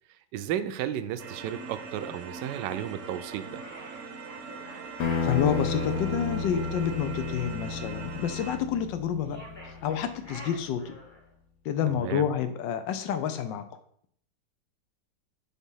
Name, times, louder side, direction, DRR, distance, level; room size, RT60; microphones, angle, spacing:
voice 1, 0.3-3.6 11.9-12.3, right 10 dB, 80° right, 11 dB, 1.2 m, -33 dB
sound 1, 1.2-8.6, right 5 dB, 60° right, 0.9 m, -42 dB
sound 2, 3.5-6.0 9.2-11.3, equal, 20° left, 0.8 m, -47 dB
sound 3, 5.0-10.1, left 4 dB, 65° left, 1.1 m, -32 dB
voice 2, 5.2-11.0 11.6-13.6, left 8 dB, 90° left, 9 dB, 1.4 m, -29 dB
6.2 x 3.6 x 5.5 m, 0.64 s
omnidirectional pair, 1.9 m